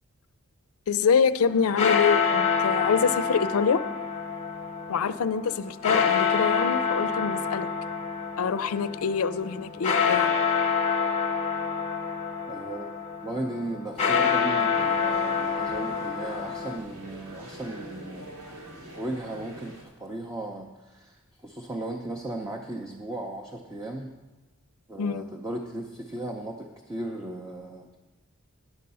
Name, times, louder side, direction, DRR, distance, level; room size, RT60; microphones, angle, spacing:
voice 1, 0.9-3.8 4.9-7.7 8.4-10.3 25.0-25.3, left 6 dB, 70° left, 14 dB, 0.4 m, -25 dB
sound 1, 1.5-16.8, left 6 dB, 30° left, 0.9 m, -27 dB
voice 2, 12.5-12.9 13.2-18.3 18.9-24.1 24.9-28.0, right 1 dB, 15° right, 1 dB, 0.6 m, -36 dB
sound 2, 14.7-19.8, right 1 dB, 80° right, 2.1 m, -44 dB
10.5 x 6.6 x 5.4 m, 1.2 s
head